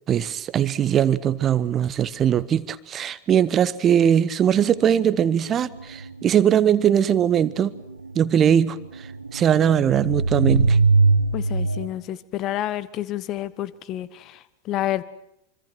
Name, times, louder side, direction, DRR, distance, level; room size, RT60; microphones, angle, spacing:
voice 1, 0.1-7.7 8.1-9.1 9.3-10.8, right 9 dB, 25° right, 17 dB, 0.9 m, -20 dB
sound 1, 4.6-11.9, right 3 dB, 80° right, 0.9 m, -22 dB
voice 2, 11.3-15.0, left 13 dB, 35° left, 18 dB, 1.1 m, -29 dB
25.5 x 25.5 x 6.2 m, 0.82 s
figure-of-eight pair, 90°, 0 cm